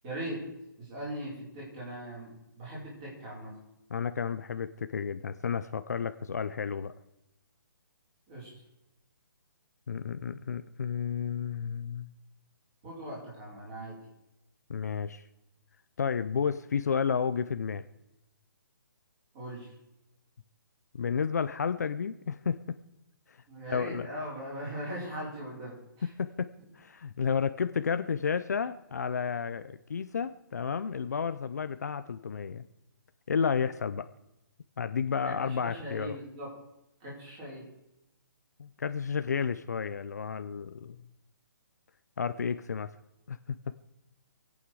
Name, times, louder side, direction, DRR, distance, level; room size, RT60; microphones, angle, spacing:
voice 1, 0.0-0.4 0.8-3.5 8.3-8.5 12.8-13.9 19.3-19.7 23.5-26.1 35.2-36.5 37.0-37.6, right 1 dB, 20° right, -6 dB, 5.2 m, -40 dB
voice 2, 3.9-6.9 9.9-12.1 14.7-15.2 16.0-17.8 20.9-22.8 23.3-23.4 23.7-24.1 26.2-26.5 26.7-32.7 33.3-34.1 34.8-36.2 38.6-41.0 42.2-42.9 43.3-43.6, left 6 dB, 50° left, 11 dB, 0.6 m, -31 dB
26.0 x 8.7 x 4.8 m, 0.90 s
hypercardioid pair, 180°, 11 cm